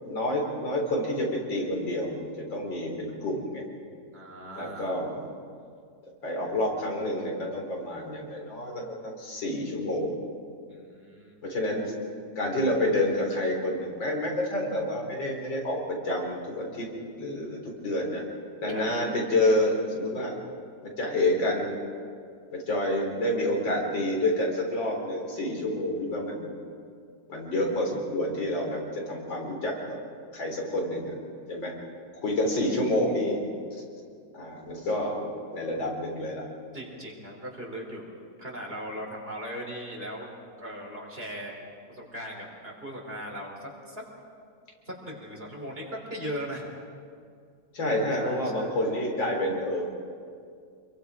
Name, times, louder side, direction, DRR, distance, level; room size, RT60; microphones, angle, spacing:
voice 1, 0.0-3.6 4.6-5.2 6.2-10.2 11.4-11.9 12.4-16.9 17.2-18.2 18.6-20.3 20.8-21.8 22.5-26.5 27.3-29.8 30.3-31.1 31.5-31.7 32.2-33.4 34.3-35.3 35.5-36.4 47.7-49.9, left 1 dB, 90° left, -1 dB, 4.7 m, -28 dB
voice 2, 4.1-5.0 10.7-11.4 18.7-18.9 36.7-38.0 38.4-40.3 40.6-41.6 41.9-44.0 44.9-46.7 48.1-48.9, equal, 30° right, -1 dB, 4.1 m, -38 dB
28.5 x 22.5 x 5.0 m, 2.3 s
omnidirectional pair, 2.0 m